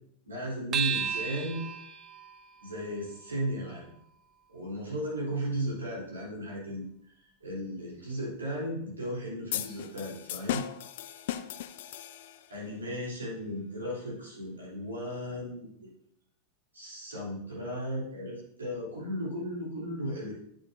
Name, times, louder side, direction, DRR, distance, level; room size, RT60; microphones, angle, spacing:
voice 1, 0.2-1.6 2.6-3.9 4.5-6.9 7.4-10.6 12.5-15.9 16.7-20.3, equal, 75° right, -5 dB, 3.3 m, -35 dB
sound 1, 0.7-5.5, right 7 dB, 35° right, 0.6 m, -37 dB
sound 2, 9.5-12.6, left 11 dB, 55° left, 0.4 m, -36 dB
8.5 x 7.6 x 2.7 m, 0.72 s
figure-of-eight pair, 90°, 0 cm